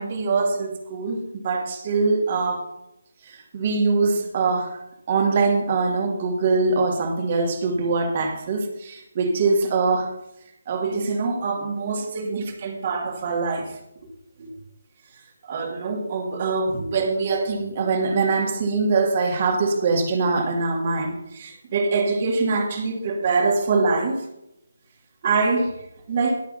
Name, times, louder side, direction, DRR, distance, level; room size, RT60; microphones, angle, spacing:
voice 1, 0.0-2.7 3.3-4.8 5.1-10.1 10.7-13.7 14.4-14.5 15.5-24.2 25.2-25.7 26.1-26.4, right 4 dB, 35° right, 3 dB, 2.3 m, -23 dB
21.0 x 8.1 x 2.8 m, 0.80 s
figure-of-eight pair, 150°, 0 cm